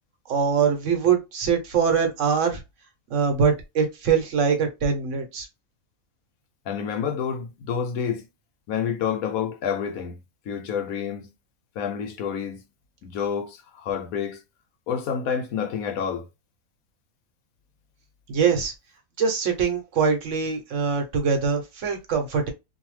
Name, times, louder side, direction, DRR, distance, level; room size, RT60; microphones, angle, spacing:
voice 1, 0.3-2.6 3.1-5.5 18.3-18.7 19.2-22.5, right 6 dB, 65° right, 1.0 m, -23 dB
voice 2, 6.7-8.2 8.7-10.2 10.5-11.3 11.8-12.6 13.0-14.4 14.9-16.3, left 7 dB, 85° left, 1.1 m, -28 dB
2.6 x 2.2 x 3.1 m
omnidirectional pair, 1.5 m